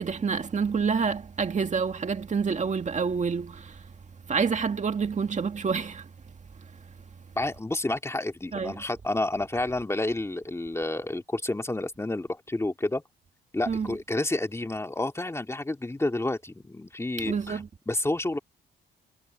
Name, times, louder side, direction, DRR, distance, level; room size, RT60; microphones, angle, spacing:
voice 1, 0.0-3.9 4.3-6.1 8.5-8.8 13.7-14.0 17.3-17.7, right 5 dB, 35° right, 1.9 m, -28 dB
voice 2, 7.4-13.0 13.5-18.4, left 2 dB, 15° left, 2.5 m, -30 dB
cardioid pair, 90°, 20 cm